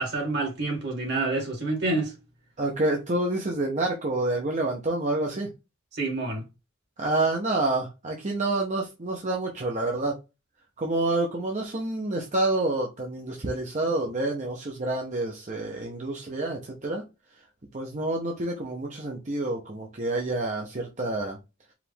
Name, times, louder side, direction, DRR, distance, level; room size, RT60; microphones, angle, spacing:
voice 1, 0.0-2.1 5.9-6.4, right 2 dB, 60° right, 2.2 m, -28 dB
voice 2, 2.6-5.5 7.0-10.2 10.8-17.0 17.7-21.4, right 2 dB, 40° right, 0.8 m, -28 dB
4.8 x 2.5 x 3.5 m
head